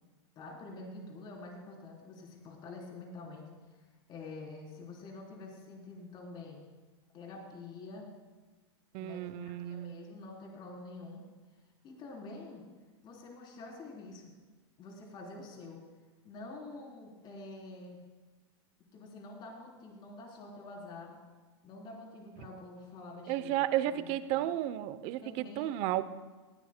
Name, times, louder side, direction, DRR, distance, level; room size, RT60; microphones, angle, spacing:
voice 1, 0.4-3.8 4.1-6.6 7.1-8.1 9.0-11.2 11.8-12.6 13.0-14.3 14.8-15.8 16.2-18.0 18.9-21.2 21.6-23.6 23.9-24.5 25.2-25.7, left 3 dB, 30° left, -1 dB, 3.6 m, -47 dB
voice 2, 8.9-9.9 23.3-26.0, right 13 dB, 40° right, 14 dB, 0.7 m, -33 dB
19.5 x 15.5 x 2.2 m, 1.3 s
hypercardioid pair, 130°, 15 cm